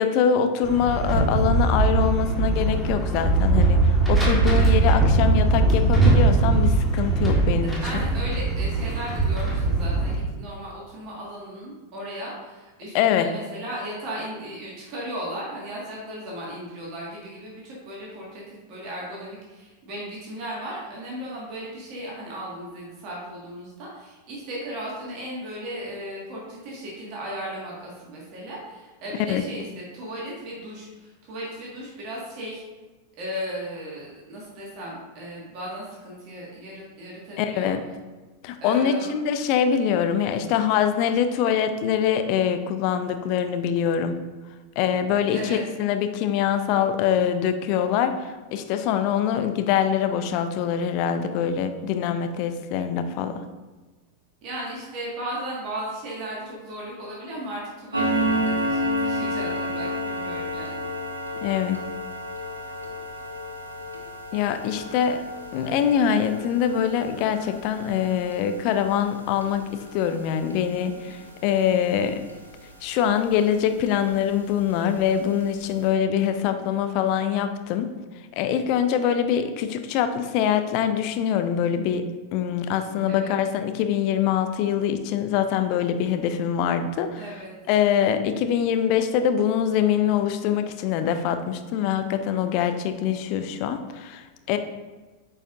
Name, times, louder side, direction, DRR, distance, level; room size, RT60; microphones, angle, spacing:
voice 1, 0.0-8.0 12.9-13.3 29.3-29.4 37.4-37.9 38.4-44.2 44.8-53.4 61.4-61.8 64.3-65.2 65.5-72.2 72.8-77.9 78.4-87.2 87.7-94.6, left 8 dB, 45° left, 8 dB, 0.5 m, -24 dB
sound 1, 0.6-10.2, right 3 dB, ahead, 1.5 m, -21 dB
voice 2, 7.8-32.6 33.2-37.7 38.6-39.1 45.3-45.6 54.4-60.9 83.1-83.4 87.1-87.5, equal, 40° right, -4 dB, 1.7 m, -36 dB
sound 2, 57.9-73.0 73.4-73.6 74.1-74.2 74.6-74.7 75.2-75.3 75.6-75.7, equal, 80° right, 0.9 m, -31 dB
8.9 x 4.9 x 2.6 m, 1.3 s
figure-of-eight pair, 90°, 0 cm